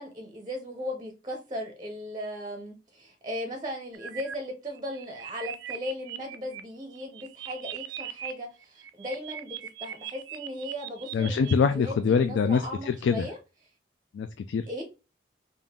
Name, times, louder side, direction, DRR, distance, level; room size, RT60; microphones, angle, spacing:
voice 1, 0.0-13.4 14.7-14.8, left 1 dB, 20° right, 0.6 m, -37 dB
sound 1, 3.9-4.3 4.7-6.6 6.9-8.3 8.6-11.6, right 12 dB, 70° right, 0.4 m, -40 dB
voice 2, 11.1-13.3 14.1-14.8, left 5 dB, 75° left, 0.3 m, -25 dB
3.6 x 2.5 x 3.5 m
head